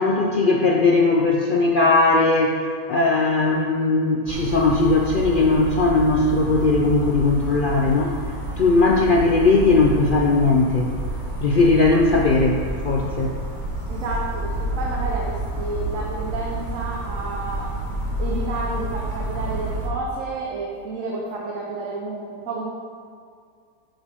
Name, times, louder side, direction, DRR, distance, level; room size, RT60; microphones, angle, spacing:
voice 1, 0.0-8.1 8.6-10.9 11.4-13.3, left 3 dB, 85° left, 0 dB, 0.4 m, -18 dB
sound 1, 4.3-19.9, right 2 dB, 30° right, 1.5 m, -29 dB
voice 2, 13.9-17.7 18.2-22.7, right 3 dB, 55° right, -2 dB, 1.2 m, -30 dB
8.9 x 7.1 x 3.6 m, 2.1 s
omnidirectional pair, 1.7 m